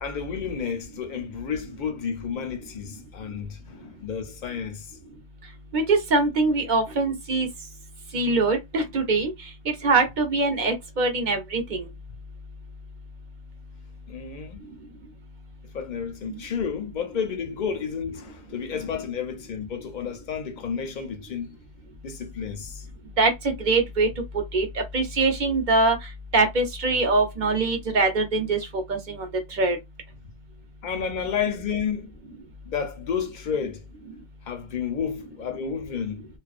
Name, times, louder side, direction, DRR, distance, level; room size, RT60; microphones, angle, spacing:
voice 1, 0.0-5.0 14.1-14.7 15.7-21.5 22.0-22.9 30.2-30.3 30.8-32.1 32.6-33.8 34.5-36.3, left 7 dB, 50° left, 0.6 m, -31 dB
voice 2, 5.7-7.5 8.1-9.3 9.7-11.9 23.2-24.1 24.5-26.0 26.3-29.8, right 3 dB, 50° right, 0.6 m, -23 dB
2.3 x 2.2 x 2.3 m
omnidirectional pair, 1.2 m